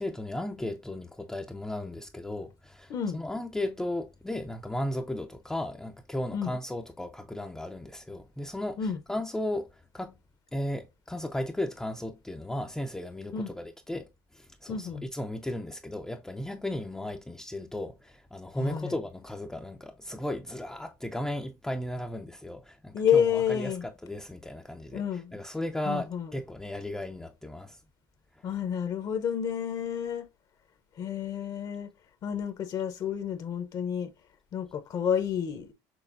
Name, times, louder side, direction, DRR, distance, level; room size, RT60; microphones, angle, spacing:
voice 1, 0.0-10.2 10.5-27.8 28.3-28.5, left 1 dB, 5° left, 0.4 m, -35 dB
voice 2, 2.9-3.2 6.3-6.5 8.8-9.0 13.3-13.5 14.7-15.0 18.5-18.9 22.9-23.8 24.9-25.3 25.8-26.3 28.4-30.3 31.0-31.9 32.2-34.1 34.5-35.7, left 8 dB, 40° left, 0.7 m, -30 dB
6.2 x 3.3 x 2.5 m
cardioid pair, 140°, 10 cm